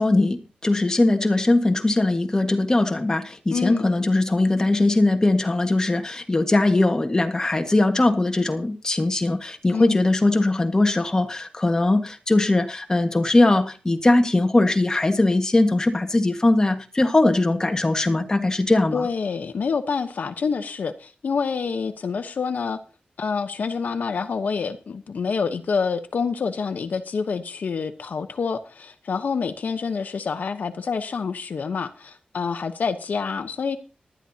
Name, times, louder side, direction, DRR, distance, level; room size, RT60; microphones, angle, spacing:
voice 1, 0.0-19.1, left 2 dB, 20° left, 1.6 m, -20 dB
voice 2, 3.5-3.8 9.7-10.0 18.9-22.8 23.2-33.8, left 5 dB, 70° left, 1.0 m, -27 dB
19.0 x 12.0 x 2.8 m
wide cardioid pair, 120°, 3 cm